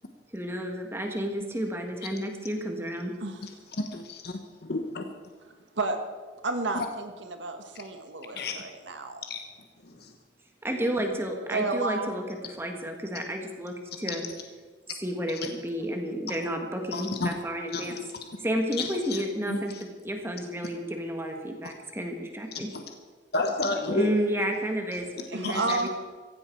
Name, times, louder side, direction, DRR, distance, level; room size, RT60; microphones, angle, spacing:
voice 1, 0.3-3.1 10.6-14.2 15.0-18.0 18.4-22.7 23.9-25.9, equal, 15° right, 3 dB, 1.7 m, -31 dB
voice 2, 3.8-5.1 6.7-6.9 8.4-8.5 9.2-9.4 9.8-10.1 14.1-14.2 15.4-15.5 16.3-16.4 16.9-17.3 17.7-17.9 18.8-19.6 21.6-21.7 22.5-22.8 23.3-24.1 25.4-25.8, left 2 dB, 60° left, 5 dB, 1.1 m, -31 dB
voice 3, 6.4-9.2 11.5-12.1 25.1-25.9, right 3 dB, 85° right, 6 dB, 1.7 m, -31 dB
16.0 x 15.5 x 4.7 m, 1.4 s
head